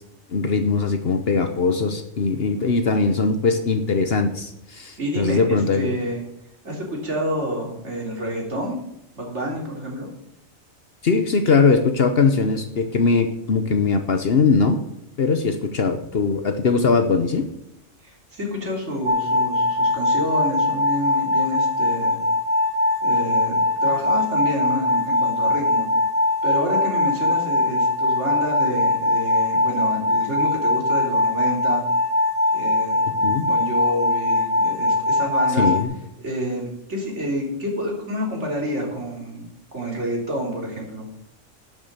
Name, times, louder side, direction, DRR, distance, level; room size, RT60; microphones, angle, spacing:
voice 1, 0.3-5.9 11.0-14.8 15.2-17.4 33.2-33.5 35.6-35.9, left 4 dB, 50° left, 8 dB, 1.1 m, -20 dB
voice 2, 5.0-6.2 6.6-8.8 9.2-10.1 18.0-22.2 23.0-25.9 26.4-31.8 32.5-35.7 36.2-39.4 39.7-41.1, equal, 60° right, -2 dB, 3.8 m, -28 dB
sound 1, 19.1-35.8, left 2 dB, 40° right, 2.4 m, -21 dB
11.5 x 7.3 x 6.8 m, 0.79 s
omnidirectional pair, 1.4 m